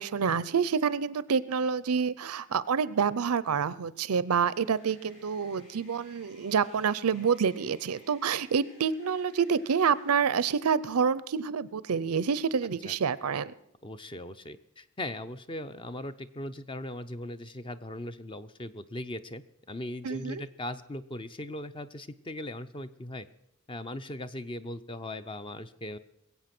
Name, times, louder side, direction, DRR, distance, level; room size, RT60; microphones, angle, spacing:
voice 1, 0.0-13.5 20.0-20.4, right 6 dB, 80° right, 18 dB, 0.5 m, -28 dB
sound 1, 4.4-10.2, left 2 dB, 60° left, 7.8 m, -58 dB
voice 2, 13.8-23.3 23.7-26.0, left 1 dB, 25° left, 12 dB, 0.6 m, -39 dB
21.0 x 8.2 x 6.0 m, 0.81 s
head